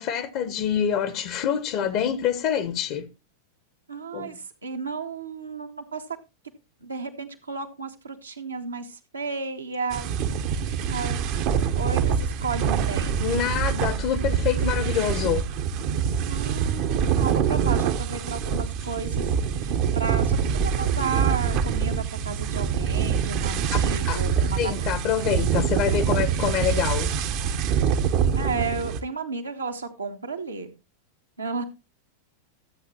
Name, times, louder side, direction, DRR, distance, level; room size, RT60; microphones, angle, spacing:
voice 1, 0.0-3.1 4.1-4.4 13.2-15.4 23.7-23.8 24.1-24.2 24.6-27.1, left 9 dB, 45° left, 0.8 m, -26 dB
voice 2, 3.9-6.0 6.8-11.3 11.7-13.3 16.3-24.7 28.3-30.7 31.4-31.6, right 4 dB, 75° right, 1.3 m, -33 dB
sound 1, 9.9-29.0, right 7 dB, 45° right, 0.8 m, -25 dB
13.0 x 8.0 x 2.8 m
figure-of-eight pair, 90°, 0 cm